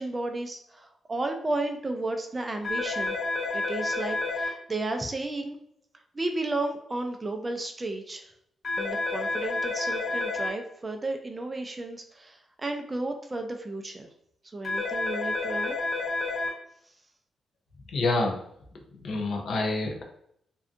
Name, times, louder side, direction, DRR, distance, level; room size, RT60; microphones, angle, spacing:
voice 1, 0.0-3.2 3.5-5.6 6.1-8.3 8.8-14.1 14.5-15.8, right 2 dB, 25° right, 5 dB, 0.3 m, -33 dB
sound 1, 2.6-4.5 8.6-10.5 14.6-16.5, left 3 dB, 35° left, 1.0 m, -29 dB
voice 2, 17.9-18.4 18.7-20.0, left 2 dB, 70° left, 2 dB, 0.5 m, -28 dB
2.6 x 2.2 x 2.4 m, 0.71 s
cardioid pair, 100°, 0 cm